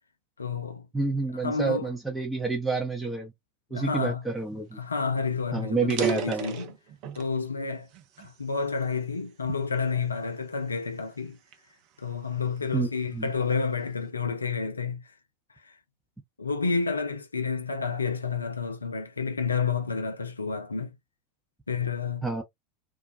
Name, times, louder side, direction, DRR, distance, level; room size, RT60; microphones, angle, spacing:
voice 1, 0.4-0.9 1.4-1.9 3.7-4.2 4.8-6.7 7.1-7.9 8.2-11.4 12.0-15.0 15.6-15.8 16.4-20.9 21.7-22.2, left 5 dB, 80° left, 0.4 m, -30 dB
voice 2, 0.9-3.3 3.7-4.8 5.5-6.6 12.7-12.9 13.1-13.3 22.2-22.4, right 3 dB, 5° right, 0.6 m, -29 dB
sound 1, 4.7-4.8 5.1-5.2 5.7-7.4 7.9-9.2 9.8-10.0 10.7-12.7, right 6 dB, 50° right, 0.6 m, -35 dB
2.4 x 2.1 x 2.6 m
figure-of-eight pair, 80°, 0 cm